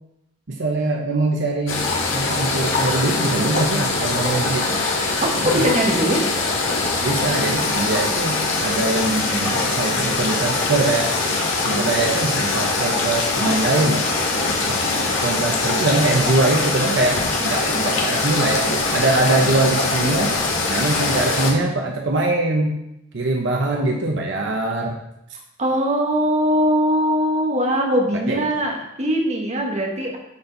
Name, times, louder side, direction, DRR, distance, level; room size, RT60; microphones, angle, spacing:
voice 1, 0.5-1.8 2.1-4.8 5.3-5.7 7.0-11.1 11.6-14.0 14.7-17.2 17.4-20.3 20.7-22.7 23.1-25.0 28.1-28.4, right 2 dB, 65° right, 1 dB, 0.9 m, -22 dB
sound 1, 1.7-21.5, left 3 dB, 70° left, 1.6 m, -22 dB
voice 2, 5.2-6.3 25.6-30.2, equal, 35° right, 1 dB, 1.3 m, -21 dB
11.0 x 4.5 x 4.0 m, 0.84 s
head